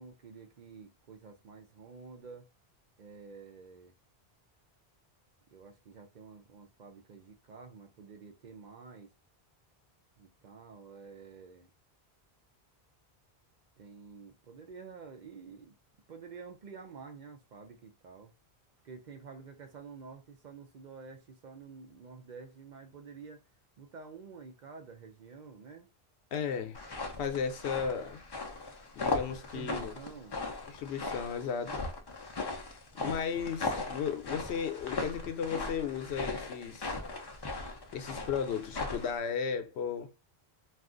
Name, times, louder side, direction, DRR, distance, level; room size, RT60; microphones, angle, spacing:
voice 1, 0.0-2.5 3.0-3.9 5.5-9.1 10.2-11.7 13.8-15.7 16.1-18.3 18.8-23.4 23.8-25.9 29.5-30.3, right 5 dB, 55° right, 0.6 m, -49 dB
voice 2, 26.3-26.8 27.2-28.2 29.0-29.9 30.7-31.8 33.0-37.0 37.9-40.1, left 7 dB, 85° left, 0.9 m, -35 dB
sound 1, 26.7-39.2, left 3 dB, 40° left, 0.3 m, -38 dB
2.4 x 2.4 x 3.7 m
omnidirectional pair, 1.1 m